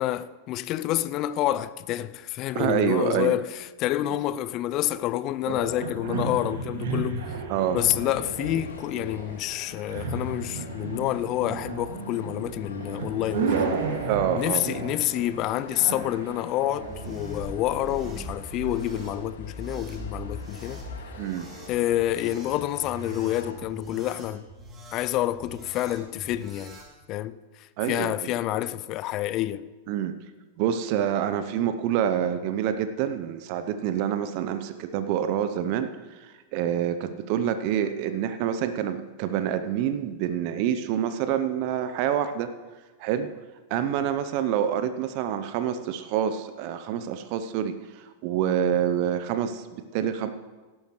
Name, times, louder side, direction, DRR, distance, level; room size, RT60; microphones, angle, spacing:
voice 1, 0.0-7.4 7.7-13.7 14.3-20.8 21.7-24.5 24.9-26.8 27.1-29.7, left 14 dB, 40° left, 0.4 m, -28 dB
voice 2, 2.5-3.4 7.5-7.8 14.1-14.6 21.2-21.5 27.8-28.1 29.9-30.1 30.6-42.5 43.0-43.3 43.7-50.3, right 9 dB, 50° right, 0.7 m, -27 dB
sound 1, 5.4-18.1, right 4 dB, 65° right, 2.2 m, -33 dB
sound 2, 7.9-23.5, left 4 dB, 75° left, 2.0 m, -47 dB
sound 3, 16.7-26.9, right 1 dB, 25° right, 2.8 m, -41 dB
17.5 x 12.0 x 3.2 m
figure-of-eight pair, 95°, 0 cm